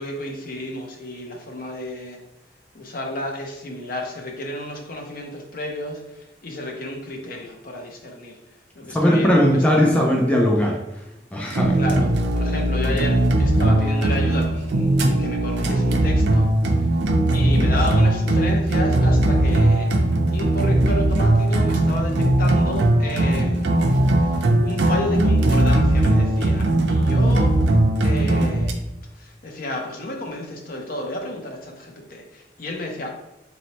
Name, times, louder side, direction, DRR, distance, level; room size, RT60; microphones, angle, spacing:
voice 1, 0.0-2.2 2.7-8.4 8.7-10.0 11.7-14.9 15.2-16.8 17.3-19.9 20.3-27.5 28.0-28.8 29.2-33.1, left 1 dB, 50° left, 2 dB, 0.7 m, -31 dB
voice 2, 8.9-10.8 11.3-11.8, equal, 10° left, -1 dB, 0.4 m, -18 dB
sound 1, 11.5-28.7, right 1 dB, 85° right, 0.5 m, -19 dB
4.0 x 3.1 x 2.8 m, 0.92 s
head